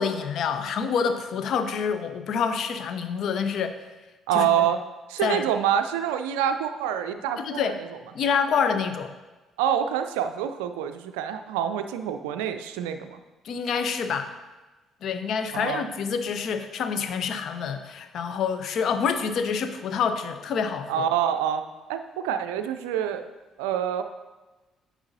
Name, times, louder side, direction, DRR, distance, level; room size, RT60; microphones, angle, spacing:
voice 1, 0.0-3.8 4.3-4.7 5.2-5.5 7.4-7.8 8.1-9.1 13.4-14.3 15.0-21.1, left 6 dB, 55° left, 8 dB, 0.6 m, -27 dB
voice 2, 4.3-4.8 5.1-7.7 9.6-13.2 15.5-15.8 20.9-21.6 21.9-23.2 23.6-24.0, right 9 dB, 75° right, 8 dB, 0.3 m, -26 dB
9.5 x 6.1 x 2.7 m, 1.2 s
figure-of-eight pair, 45°, 0 cm